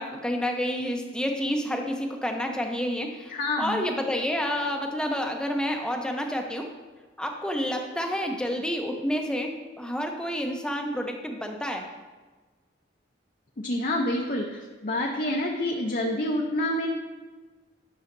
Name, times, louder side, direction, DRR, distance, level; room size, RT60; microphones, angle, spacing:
voice 1, 0.0-6.7 7.2-11.9, equal, 5° left, 2 dB, 0.6 m, -29 dB
voice 2, 3.3-3.9 13.6-16.9, left 1 dB, 45° left, 0 dB, 0.6 m, -28 dB
10.5 x 6.4 x 2.6 m, 1.3 s
head